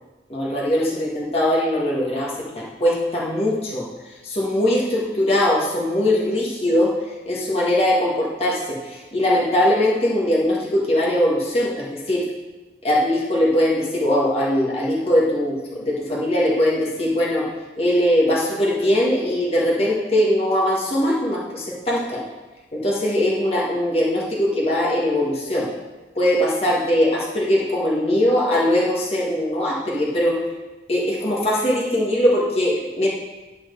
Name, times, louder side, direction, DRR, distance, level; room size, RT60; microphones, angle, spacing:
voice 1, 0.3-3.8 4.2-6.9 7.2-12.2 12.8-17.4 17.8-22.2 22.7-25.7 26.1-30.4 30.9-33.1, left 1 dB, 35° left, -5 dB, 1.6 m, -21 dB
11.0 x 4.4 x 6.6 m, 1.2 s
head